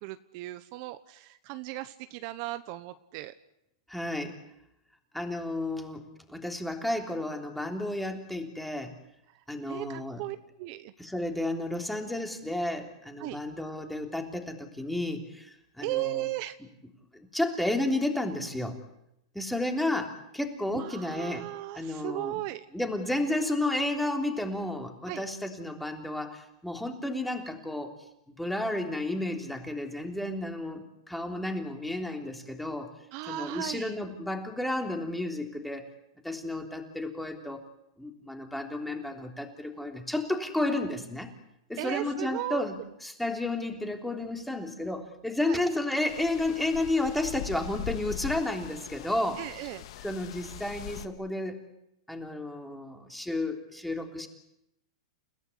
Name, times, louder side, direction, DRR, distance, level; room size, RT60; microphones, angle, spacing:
voice 1, 0.0-3.3 9.3-10.9 13.2-13.4 15.8-16.6 20.7-22.7 25.1-25.2 33.1-33.9 41.8-42.6 45.5-45.6 49.4-49.9, right 17 dB, 45° right, 12 dB, 1.0 m, -36 dB
voice 2, 3.9-4.4 5.1-6.0 6.3-8.9 9.5-10.2 11.0-16.2 17.3-18.8 19.3-21.4 21.7-22.4 22.7-27.9 28.4-32.9 33.3-35.8 36.2-37.6 38.0-41.3 41.7-42.7 43.0-49.4 50.0-51.6 52.1-54.3, left 1 dB, 5° left, 3 dB, 3.4 m, -32 dB
sound 1, 46.1-51.1, left 11 dB, 65° left, 1.7 m, -41 dB
30.0 x 17.0 x 9.7 m, 0.84 s
hypercardioid pair, 140°, 3 cm